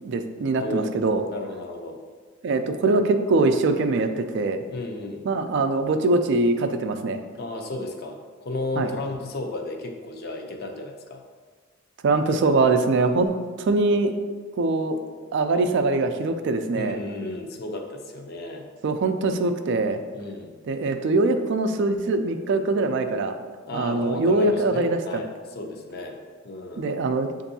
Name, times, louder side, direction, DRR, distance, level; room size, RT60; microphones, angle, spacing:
voice 1, 0.0-1.2 2.4-4.6 5.2-7.2 8.8-8.9 12.0-14.2 14.6-15.0 15.3-17.0 18.8-20.0 20.7-23.4 23.7-25.2 26.8-27.3, right 3 dB, 60° right, 8 dB, 0.3 m, -23 dB
voice 2, 0.6-2.0 4.7-5.2 7.3-11.2 16.8-18.7 20.1-20.5 23.7-26.2 26.4-26.9, left 2 dB, 50° left, 3 dB, 0.5 m, -33 dB
6.7 x 2.6 x 2.7 m, 1.5 s
head